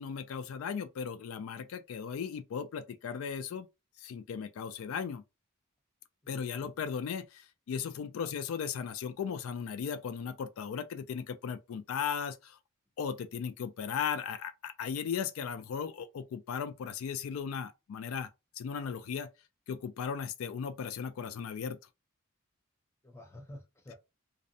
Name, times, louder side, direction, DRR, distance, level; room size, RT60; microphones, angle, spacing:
voice 1, 0.0-3.7 4.0-5.2 6.3-12.6 13.0-18.3 18.6-19.3 19.7-21.8, left 7 dB, 70° left, 0.3 m, -37 dB
voice 2, 6.2-6.7 8.2-8.4 23.0-23.9, left 1 dB, 10° left, 0.5 m, -50 dB
2.6 x 2.0 x 2.6 m
head